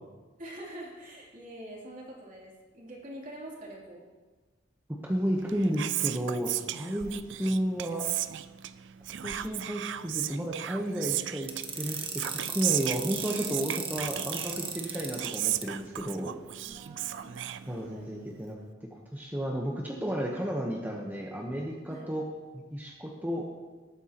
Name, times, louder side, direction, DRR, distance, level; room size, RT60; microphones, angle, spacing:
voice 1, 0.4-4.0 7.0-7.2 16.6-17.3 17.6-18.1 21.9-22.1, right 1 dB, 45° right, -4 dB, 3.1 m, -45 dB
voice 2, 5.0-7.1 7.4-8.1 9.2-11.5 11.7-16.3 17.7-18.6 19.1-22.2 22.5-23.4, equal, 10° right, -2 dB, 1.0 m, -32 dB
Whispering, 5.3-18.2, right 13 dB, 80° right, 0.4 m, -35 dB
sound 1, 11.5-15.6, right 6 dB, 30° right, 1.1 m, -36 dB
18.5 x 9.0 x 3.0 m, 1.3 s
head